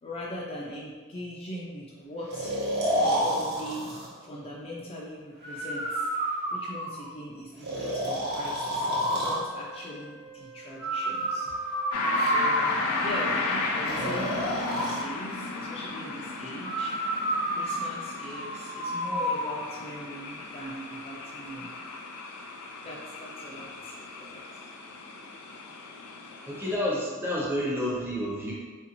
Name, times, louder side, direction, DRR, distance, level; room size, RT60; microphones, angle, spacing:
voice 1, 0.0-2.5 3.0-3.9 4.2-6.1 6.5-11.5 12.1-17.1 17.5-21.7 22.8-24.4, left 1 dB, 25° left, -5 dB, 0.3 m, -40 dB
Breathing, 2.3-4.1 5.4-7.1 7.6-9.4 10.8-13.1 13.8-15.0 16.6-19.5, right 1 dB, 50° right, 0.8 m, -29 dB
Wind instrument woodwind instrument, 7.8-12.6, right 1 dB, 85° right, 0.5 m, -50 dB
sound 1, 11.9-26.7, left 3 dB, 80° left, 0.5 m, -34 dB
voice 2, 26.5-28.5, equal, 10° right, -5 dB, 0.7 m, -29 dB
3.9 x 2.5 x 2.9 m, 1.5 s
head